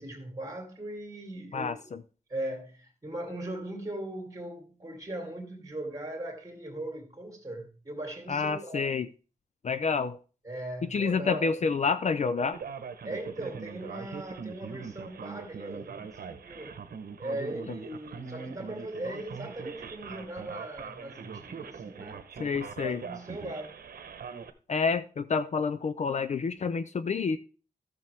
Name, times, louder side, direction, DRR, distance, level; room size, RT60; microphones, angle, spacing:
voice 1, 0.0-1.9 2.3-8.9 10.4-11.7 13.0-16.8 17.2-22.2 22.8-23.8, right 1 dB, 25° right, 2.6 m, -39 dB
voice 2, 1.5-2.0 8.3-9.1 9.6-10.2 10.9-12.6 22.4-23.0 24.7-27.4, left 5 dB, 50° left, 0.5 m, -28 dB
Male speech man speaking, 12.5-24.5, right 6 dB, 80° right, 0.9 m, -42 dB
13.5 x 6.8 x 3.4 m
wide cardioid pair, 115°, 15 cm